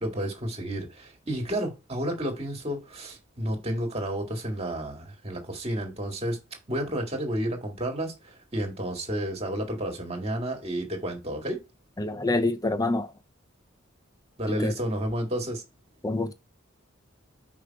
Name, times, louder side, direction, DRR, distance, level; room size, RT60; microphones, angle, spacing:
voice 1, 0.0-6.4 6.7-11.6 14.4-15.6, right 1 dB, 30° right, 2.0 m, -31 dB
voice 2, 12.0-13.1 14.4-14.7 16.0-16.3, left 2 dB, 20° left, 0.7 m, -26 dB
5.5 x 5.1 x 4.6 m
head